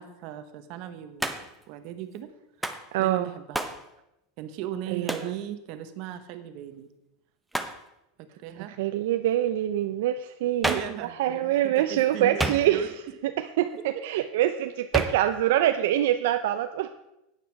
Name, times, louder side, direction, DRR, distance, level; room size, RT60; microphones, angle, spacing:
voice 1, 0.0-1.4 1.7-2.3 3.0-3.6 4.4-6.9 8.2-8.8 10.6-12.9 13.9-14.0, right 10 dB, 45° right, 9 dB, 1.1 m, -37 dB
Hands, 1.2-1.6 2.6-2.9 3.5-3.8 5.1-5.3 7.5-7.8 10.6-11.0 12.4-13.0 14.9-15.3, right 2 dB, 5° right, 0.7 m, -30 dB
voice 2, 2.9-3.3 4.9-5.3 8.8-10.8 11.2-12.9 13.2-17.1, right 12 dB, 70° right, 9 dB, 0.5 m, -25 dB
11.5 x 9.2 x 4.6 m, 0.89 s
supercardioid pair, 160°, 0 cm